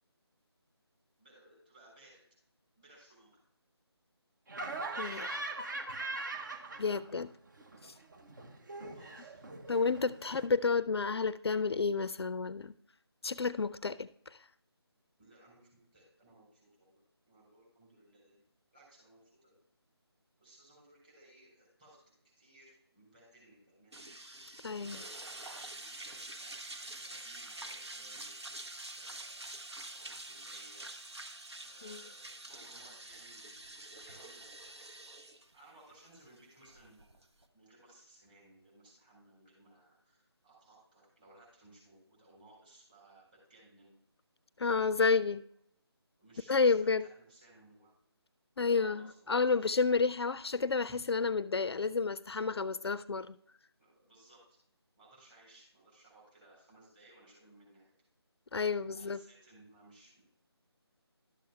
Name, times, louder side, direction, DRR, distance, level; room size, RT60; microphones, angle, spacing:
voice 1, 1.2-2.2 2.8-3.4 8.5-9.4 9.7-10.0 15.2-18.4 18.7-19.6 20.4-24.0 24.8-28.7 29.0-30.9 31.6-34.5 35.5-43.9 46.2-47.9 48.6-49.7 50.9-51.0 53.8-54.6 55.0-57.9 58.7-60.2, right 2 dB, 20° right, -4 dB, 3.9 m, -61 dB
Laughter, 4.5-7.3 7.5-10.4, right 2 dB, 45° right, 0.9 m, -41 dB
voice 2, 5.0-5.4 6.8-7.3 7.8-7.9 9.7-12.7 13.2-14.1 24.6-25.0 31.8-32.0 44.6-45.4 46.5-47.0 48.6-53.3 58.5-59.2, left 4 dB, 70° left, 16 dB, 0.4 m, -30 dB
sound 1, 23.9-37.4, right 2 dB, 75° right, 1.1 m, -47 dB
12.0 x 7.5 x 2.3 m, 0.71 s
figure-of-eight pair, 160°, 14 cm